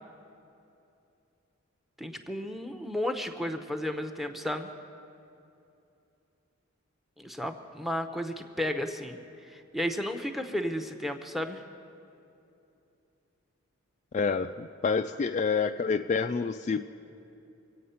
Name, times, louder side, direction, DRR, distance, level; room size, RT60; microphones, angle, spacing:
voice 1, 2.0-4.7 7.2-9.2 9.5-11.6, left 1 dB, ahead, 6 dB, 0.7 m, -33 dB
voice 2, 14.1-16.8, left 5 dB, 35° left, 7 dB, 0.3 m, -28 dB
24.5 x 8.5 x 5.6 m, 2.7 s
head